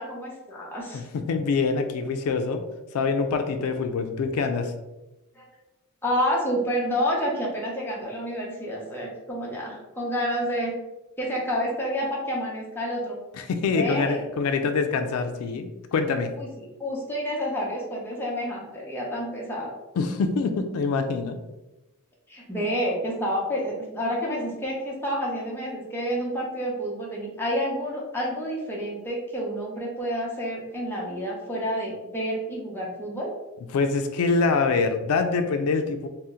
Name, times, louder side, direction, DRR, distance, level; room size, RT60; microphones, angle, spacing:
voice 1, 0.0-1.0 5.4-5.5 6.0-10.7 11.2-13.2 13.7-14.3 16.4-16.5 16.8-19.7 22.3-33.3, equal, 10° left, -4 dB, 0.7 m, -29 dB
voice 2, 0.9-2.6 2.9-4.7 13.3-16.3 20.0-21.4 33.7-36.1, left 4 dB, 85° left, 7 dB, 0.3 m, -25 dB
2.8 x 2.0 x 3.5 m, 1.0 s
head